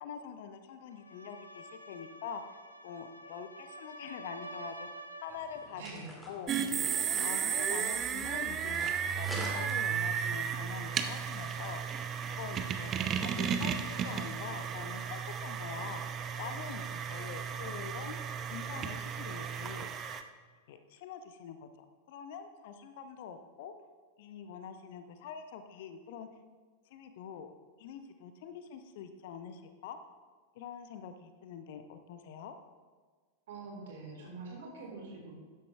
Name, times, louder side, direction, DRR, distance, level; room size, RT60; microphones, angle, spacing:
voice 1, 0.0-2.6 2.8-5.8 6.3-11.8 12.3-12.9 13.2-16.0 16.4-18.2 18.5-19.9 20.7-23.7 24.2-26.3 26.9-27.5 27.8-30.0 30.5-32.5, left 7 dB, 50° left, 8 dB, 0.9 m, -45 dB
sound 1, 0.9-5.8, right 1 dB, 85° left, 0.9 m, -48 dB
sound 2, 5.3-10.3, left 1 dB, 5° left, 2.2 m, -47 dB
voice 2, 5.7-6.1 33.5-35.4, right 3 dB, 60° right, -2 dB, 3.9 m, -45 dB
sound 3, 6.5-20.2, right 7 dB, 30° right, 0.7 m, -34 dB
13.5 x 10.0 x 3.3 m, 1.5 s
figure-of-eight pair, 90°, 0 cm